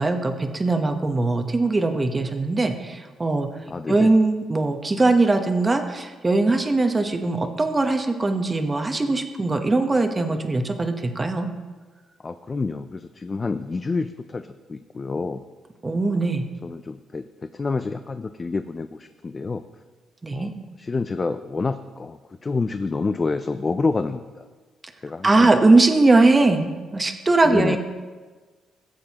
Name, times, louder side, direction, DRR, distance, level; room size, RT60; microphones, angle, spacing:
voice 1, 0.0-3.5 3.9-11.5 15.8-16.5 20.2-20.5 25.2-27.8, right 2 dB, 25° right, 6 dB, 1.0 m, -20 dB
voice 2, 3.7-4.1 12.2-15.4 16.1-16.3 16.6-19.6 20.3-20.5 20.8-24.4 25.0-25.5 27.4-27.8, left 3 dB, 30° left, 9 dB, 0.4 m, -28 dB
15.0 x 7.6 x 2.9 m, 1.4 s
cardioid pair, 90°, 0 cm